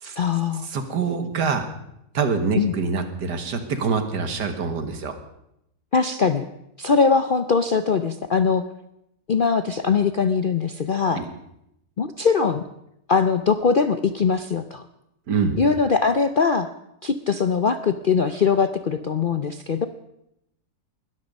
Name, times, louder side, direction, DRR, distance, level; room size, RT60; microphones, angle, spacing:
voice 1, 0.0-0.7 2.5-2.7 5.9-6.5 6.8-8.6 9.3-11.3 12.0-12.6 13.1-14.8 15.5-16.7 17.0-19.9, left 5 dB, 55° left, 10 dB, 0.5 m, -21 dB
voice 2, 0.7-1.7 2.1-5.2 11.1-11.2 15.3-15.6, right 5 dB, 80° right, 8 dB, 2.2 m, -25 dB
20.5 x 13.0 x 5.4 m, 0.81 s
omnidirectional pair, 1.8 m